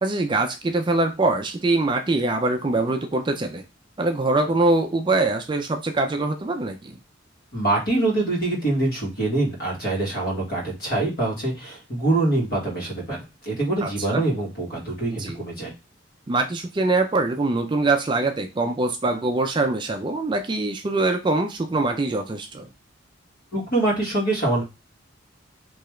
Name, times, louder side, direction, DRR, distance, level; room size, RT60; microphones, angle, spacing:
voice 1, 0.0-3.6 4.0-7.0 13.8-14.2 15.1-15.4 16.3-22.7, right 2 dB, 25° right, 5 dB, 0.3 m, -23 dB
voice 2, 7.5-13.2 13.4-15.7 23.5-24.6, right 2 dB, 50° left, -2 dB, 1.5 m, -24 dB
3.5 x 2.8 x 3.1 m, 0.26 s
head